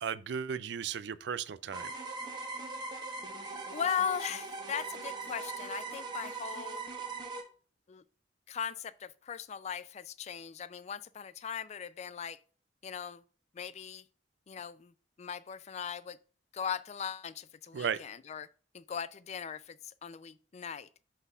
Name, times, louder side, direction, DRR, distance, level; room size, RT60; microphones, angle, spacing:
voice 1, 0.0-1.9 17.7-18.0, right 7 dB, 65° right, 0.4 m, -35 dB
sound 1, 1.7-7.4, right 3 dB, 25° right, 1.1 m, -40 dB
voice 2, 3.7-6.8 7.9-8.0 8.5-12.4 12.8-13.2 13.5-14.0 14.5-14.9 15.2-16.2 16.5-18.5 18.7-20.9, left 8 dB, 40° left, 0.4 m, -38 dB
10.5 x 4.1 x 2.3 m
head